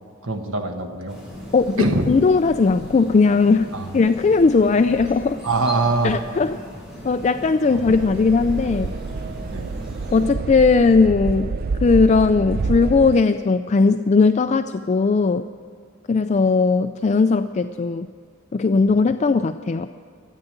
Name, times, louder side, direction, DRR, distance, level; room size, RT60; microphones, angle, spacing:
voice 1, 0.2-1.2 1.8-2.1 3.7-3.9 5.4-6.2 7.7-7.9 9.5-9.7, right 2 dB, 80° right, 4 dB, 1.4 m, -23 dB
sound 1, 1.1-10.3, equal, 5° right, 4.0 m, -38 dB
voice 2, 1.5-5.4 6.0-6.5 7.0-9.0 10.1-11.5 11.8-15.4 16.1-18.1 18.5-19.9, left 4 dB, 35° left, 9 dB, 0.3 m, -18 dB
sound 2, 7.9-13.2, right 4 dB, 50° right, 0.4 m, -28 dB
13.5 x 9.1 x 8.8 m, 2.1 s
head